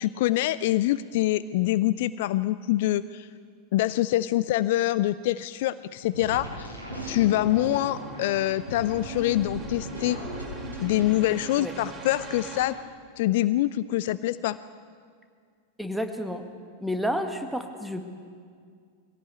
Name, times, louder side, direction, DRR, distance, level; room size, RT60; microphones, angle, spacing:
voice 1, 0.0-3.3 3.7-6.7 7.1-10.2 10.8-12.8 13.2-14.6, left 15 dB, 50° left, 16 dB, 0.4 m, -25 dB
sound 1, 6.1-11.1, equal, 90° left, 5.7 m, -37 dB
sound 2, 7.4-12.6, right 5 dB, 15° right, 3.4 m, -42 dB
voice 2, 15.8-16.5 16.8-18.0, equal, ahead, 5 dB, 1.8 m, -30 dB
22.0 x 17.0 x 8.2 m, 2.1 s
figure-of-eight pair, 90°, 0 cm